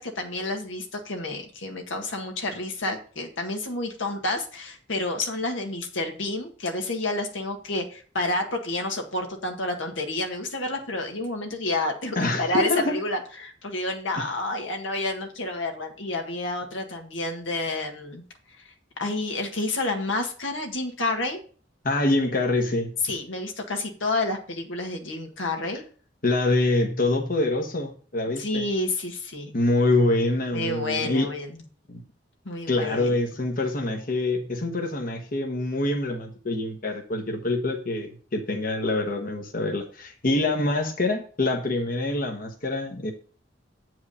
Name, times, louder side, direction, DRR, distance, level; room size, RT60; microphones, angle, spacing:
voice 1, 0.0-18.7 19.0-21.4 23.0-25.8 28.4-29.6 30.5-31.6 32.5-33.1, left 2 dB, 85° left, 3 dB, 1.8 m, -29 dB
voice 2, 12.1-12.9 21.8-22.9 26.2-28.6 29.5-31.3 31.9-32.0 32.7-43.1, left 2 dB, 50° left, 3 dB, 1.2 m, -25 dB
8.5 x 4.8 x 5.4 m, 0.42 s
head